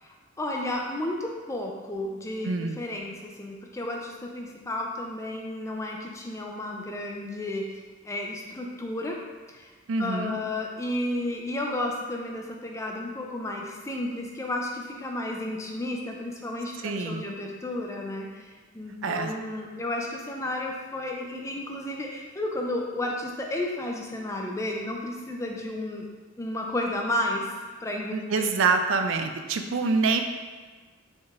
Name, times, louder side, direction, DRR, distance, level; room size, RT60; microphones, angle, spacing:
voice 1, 0.0-7.8 8.0-9.2 9.5-9.7 10.0-26.1 26.4-27.5 27.8-28.4, left 1 dB, 15° left, 0 dB, 0.3 m, -32 dB
voice 2, 2.4-2.8 9.9-10.4 16.8-17.2 19.0-19.3 28.1-30.2, right 4 dB, 70° right, 6 dB, 0.4 m, -26 dB
5.0 x 3.7 x 2.4 m, 1.4 s
head